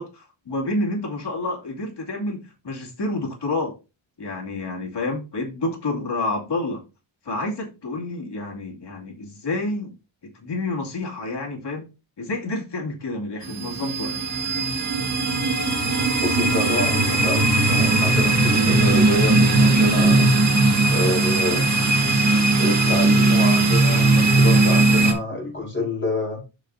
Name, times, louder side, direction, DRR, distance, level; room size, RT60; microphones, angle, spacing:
voice 1, 0.0-3.8 4.2-6.8 7.2-9.9 10.2-11.9 12.2-14.2, left 2 dB, 55° left, 2.5 m, -29 dB
sound 1, 13.4-25.1, right 2 dB, 35° right, 1.8 m, -18 dB
voice 2, 16.2-20.3 20.9-21.7 22.6-26.4, left 1 dB, 25° left, 5.1 m, -28 dB
12.5 x 5.1 x 2.7 m
wide cardioid pair, 150°, 48 cm